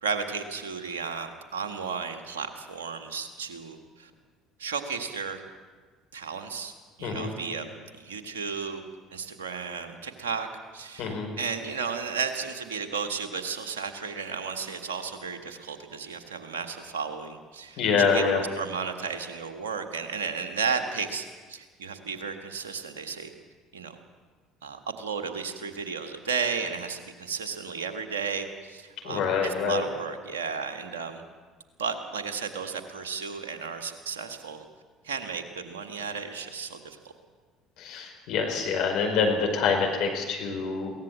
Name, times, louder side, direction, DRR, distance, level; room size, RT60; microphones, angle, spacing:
voice 1, 0.0-4.1 4.6-5.4 6.1-6.7 7.0-8.8 9.1-10.5 10.7-23.3 23.7-24.0 24.6-31.2 31.8-34.6 35.0-37.1, right 5 dB, 80° right, 5 dB, 1.7 m, -34 dB
voice 2, 7.0-7.3 11.0-11.3 17.8-18.4 29.0-29.8 37.8-40.9, left 5 dB, 60° left, 2 dB, 5.0 m, -26 dB
23.0 x 17.5 x 7.6 m, 1.4 s
figure-of-eight pair, 60°, 0 cm